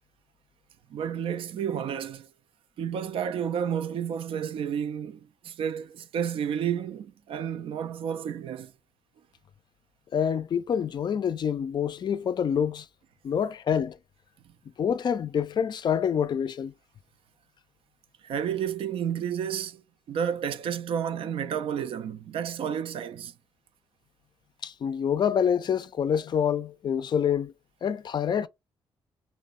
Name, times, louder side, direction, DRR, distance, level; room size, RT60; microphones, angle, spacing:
voice 1, 0.9-2.3 2.8-8.7 18.2-23.3, right 8 dB, 70° right, 0.3 m, -31 dB
voice 2, 10.1-12.9 13.2-14.0 14.8-16.7 24.6-27.5 27.8-28.5, left 8 dB, 50° left, 0.3 m, -26 dB
3.1 x 2.1 x 2.4 m
supercardioid pair, 65°, 10 cm